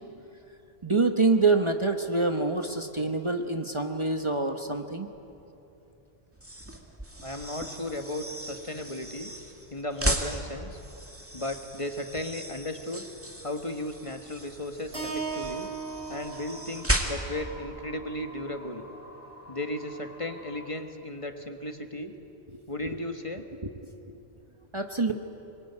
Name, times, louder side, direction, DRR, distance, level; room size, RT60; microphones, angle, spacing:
voice 1, 0.8-5.1 22.5-22.6 23.6-23.9 24.7-25.1, right 3 dB, 30° right, 5 dB, 1.1 m, -26 dB
sound 1, 6.3-17.5, right 1 dB, 15° right, 2.2 m, -35 dB
voice 2, 7.2-9.3 9.7-10.8 11.3-13.0 13.4-15.7 16.1-18.8 19.5-22.1 22.7-23.4, left 1 dB, 30° left, 6 dB, 1.5 m, -35 dB
sound 2, 14.8-20.7, equal, 15° left, 3.0 m, -49 dB
Keyboard (musical), 14.9-19.2, right 5 dB, 80° right, 4.4 m, -39 dB
24.5 x 22.0 x 9.9 m, 2.9 s
omnidirectional pair, 1.0 m